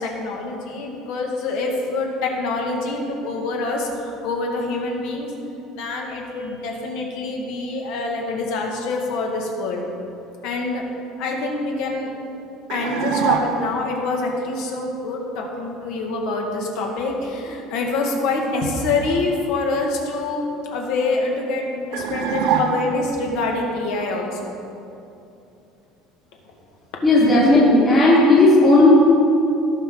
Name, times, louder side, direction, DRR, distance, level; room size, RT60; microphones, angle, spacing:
voice 1, 0.0-5.3 5.7-9.9 10.4-10.9 11.2-12.1 12.7-20.4 20.7-24.6, left 3 dB, 60° left, 0 dB, 1.7 m, -25 dB
sound 1, 12.7-13.9 21.9-23.2, right 7 dB, 60° right, 0.8 m, -23 dB
voice 2, 27.0-28.9, left 2 dB, 20° left, -9 dB, 1.7 m, -13 dB
17.5 x 6.0 x 3.8 m, 2.8 s
cardioid pair, 175°, 0 cm